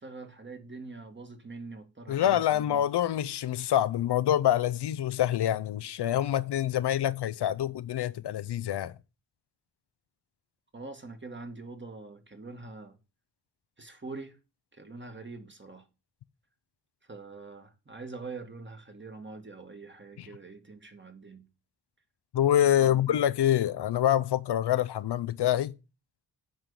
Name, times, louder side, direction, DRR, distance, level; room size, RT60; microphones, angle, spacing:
voice 1, 0.0-2.8 10.7-13.0 13.8-14.4 14.7-15.9 17.1-21.5 22.8-23.2, right 3 dB, 25° right, 1.8 m, -44 dB
voice 2, 2.1-8.9 20.2-20.3 22.3-25.7, left 11 dB, 75° left, 0.6 m, -26 dB
8.9 x 3.7 x 6.8 m
cardioid pair, 55°, 41 cm